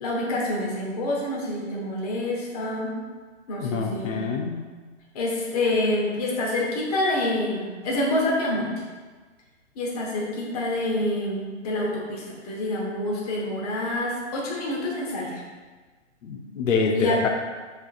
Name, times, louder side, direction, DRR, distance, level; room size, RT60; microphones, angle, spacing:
voice 1, 0.0-3.0 3.5-4.2 5.1-8.7 9.7-15.4 16.9-17.2, left 1 dB, 30° left, -3 dB, 0.9 m, -27 dB
voice 2, 3.6-4.7 16.2-17.3, left 5 dB, 85° left, 2 dB, 0.7 m, -26 dB
6.3 x 3.4 x 2.4 m, 1.4 s
hypercardioid pair, 155°, 37 cm